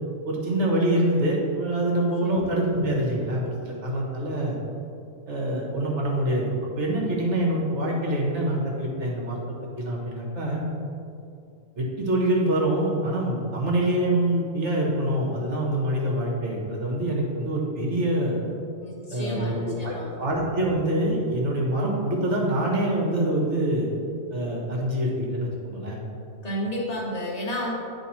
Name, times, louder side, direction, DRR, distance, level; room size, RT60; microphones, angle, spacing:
voice 1, 0.3-4.6 5.3-6.5 6.7-9.4 9.8-10.6 11.8-18.4 19.1-23.9 24.3-26.0, right 1 dB, 60° right, -2 dB, 1.6 m, -25 dB
voice 2, 2.2-2.6 18.8-20.2 26.4-27.7, equal, 30° left, -4 dB, 1.4 m, -32 dB
10.0 x 3.5 x 4.2 m, 2.6 s
omnidirectional pair, 1.4 m